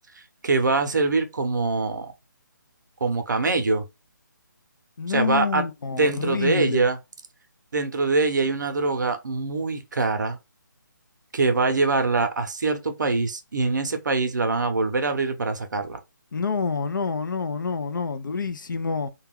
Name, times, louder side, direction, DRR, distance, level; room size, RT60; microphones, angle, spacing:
voice 1, 0.4-2.1 3.0-3.8 5.1-5.6 5.9-7.0 7.7-10.4 11.3-16.0, right 3 dB, 65° right, 0.6 m, -24 dB
voice 2, 5.0-6.9 16.3-19.1, left 5 dB, 70° left, 0.5 m, -27 dB
2.3 x 2.2 x 3.4 m
hypercardioid pair, 170°, 11 cm